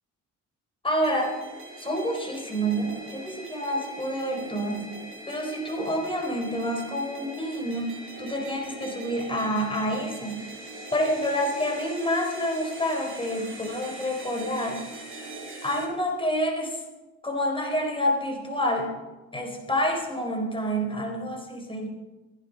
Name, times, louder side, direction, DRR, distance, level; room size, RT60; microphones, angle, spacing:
voice 1, 0.8-1.4 1.8-5.0 5.3-10.5 10.9-14.8 15.6-16.8 17.2-18.9 19.3-21.9, equal, 15° left, 1 dB, 3.9 m, -28 dB
sound 1, 1.0-15.8, right 2 dB, 45° right, 5.4 m, -41 dB
14.5 x 11.0 x 5.2 m, 1.1 s
cardioid pair, 90°, 30 cm